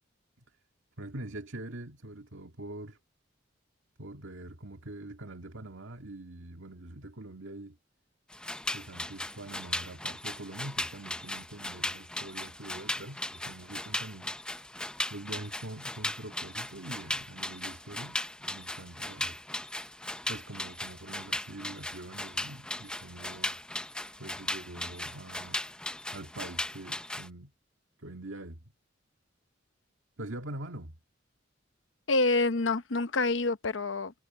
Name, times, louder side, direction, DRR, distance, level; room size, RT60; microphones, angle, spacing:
voice 1, 1.0-3.0 4.0-7.8 8.7-14.3 15.1-19.4 20.3-23.6 24.2-25.6 26.1-27.5 28.0-28.7 30.2-30.9, right 1 dB, 80° right, 1.9 m, -44 dB
sound 1, 8.3-27.3, left 1 dB, 5° left, 0.8 m, -37 dB
voice 2, 32.1-34.2, left 3 dB, 75° left, 0.9 m, -27 dB
head